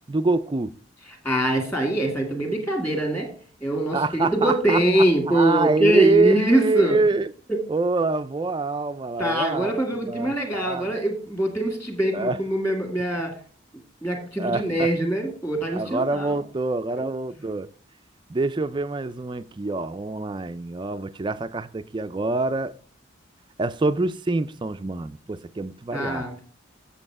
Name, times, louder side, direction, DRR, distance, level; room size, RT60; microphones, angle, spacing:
voice 1, 0.1-0.7 3.9-7.3 7.7-9.7 10.1-10.9 12.1-12.4 14.4-14.9 15.7-17.7 18.3-22.7 23.6-26.2, right 3 dB, 25° right, 0.4 m, -25 dB
voice 2, 1.2-3.3 3.6-7.0 9.2-13.4 14.0-16.4 17.0-17.1 25.9-26.5, right 1 dB, 10° left, 1.9 m, -23 dB
7.7 x 7.0 x 4.7 m
head